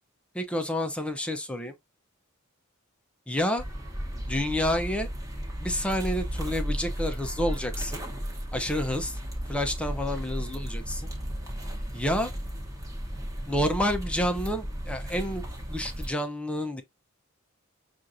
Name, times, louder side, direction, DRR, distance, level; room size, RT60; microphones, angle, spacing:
voice 1, 0.3-1.7 3.3-3.6 4.3-5.1 5.6-8.0 8.5-9.2 9.5-11.1 11.9-12.3 13.5-15.4 15.7-16.8, left 1 dB, 5° left, 0.7 m, -29 dB
sound 1, 3.6-16.1, equal, 15° right, 1.1 m, -34 dB
6.2 x 2.5 x 2.7 m
head